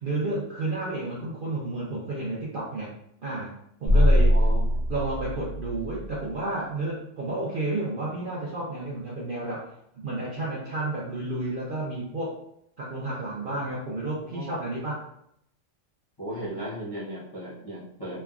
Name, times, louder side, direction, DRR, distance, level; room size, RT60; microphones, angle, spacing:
voice 1, 0.0-2.9 3.2-3.5 3.8-4.4 4.9-9.7 9.9-12.4 12.8-15.0, right 2 dB, 55° right, -6 dB, 0.6 m, -31 dB
sound 1, 3.9-6.3, equal, 55° left, 0.9 m, -22 dB
voice 2, 3.9-4.8 13.4-13.6 14.2-14.5 16.2-18.2, equal, 25° left, -9 dB, 0.6 m, -37 dB
3.3 x 2.2 x 2.3 m, 0.72 s
omnidirectional pair, 1.5 m